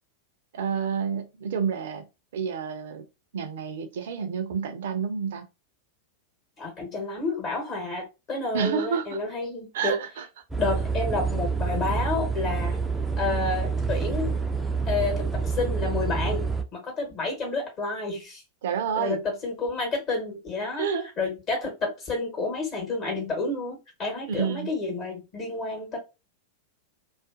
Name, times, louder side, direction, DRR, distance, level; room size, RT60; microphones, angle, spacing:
voice 1, 0.5-2.1 2.3-3.1 3.3-5.5 8.5-9.2 9.7-10.3 18.6-19.2 20.8-21.1 24.3-24.7, right 7 dB, 60° right, 0.5 m, -29 dB
voice 2, 6.6-10.0 10.6-12.8 13.2-14.4 14.8-18.4 19.0-20.9 21.2-26.0, left 3 dB, 35° left, 1.0 m, -30 dB
sound 1, 10.5-16.6, right 5 dB, 5° right, 0.4 m, -27 dB
2.5 x 2.5 x 2.4 m
figure-of-eight pair, 90°, 0 cm